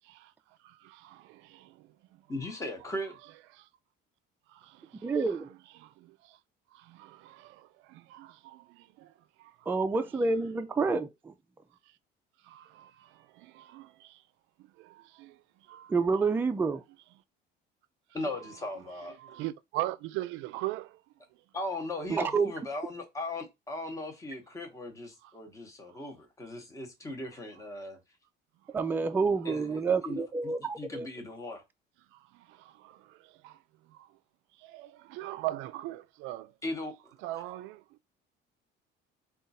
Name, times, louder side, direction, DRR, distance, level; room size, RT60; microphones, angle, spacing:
voice 1, 0.6-2.2 3.5-3.7 4.5-5.4 5.8-6.4 6.7-9.8 12.4-14.2 14.6-15.9 18.3-18.6 19.2-21.0 25.2-25.3 25.9-26.0 28.6-28.8 32.1-34.2 34.6-36.5 37.2-38.0, right 16 dB, 80° right, 0.4 m, -41 dB
voice 2, 2.3-3.2 18.1-19.2 21.5-28.0 29.4-31.6 36.6-37.1, left 1 dB, 15° left, 0.9 m, -38 dB
voice 3, 5.0-5.5 9.7-11.3 15.9-16.8 22.1-22.5 28.7-31.1, right 4 dB, 10° right, 0.3 m, -28 dB
3.7 x 2.4 x 4.0 m
cardioid pair, 140°, 20 cm